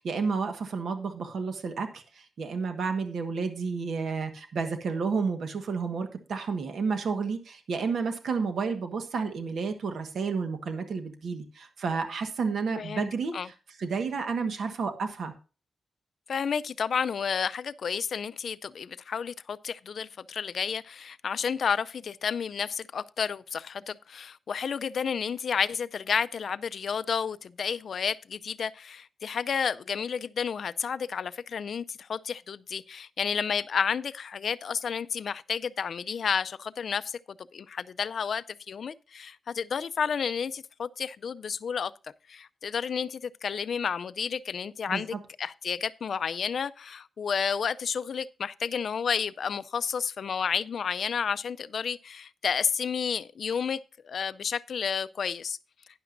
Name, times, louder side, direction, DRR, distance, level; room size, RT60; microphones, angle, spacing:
voice 1, 0.0-15.3 44.9-45.0, right 5 dB, 65° right, 1.3 m, -31 dB
voice 2, 12.8-13.1 13.3-13.5 16.3-41.9 42.3-53.8 54.0-55.6, left 6 dB, 55° left, 0.4 m, -31 dB
12.0 x 10.0 x 2.6 m
wide cardioid pair, 165°, 0 cm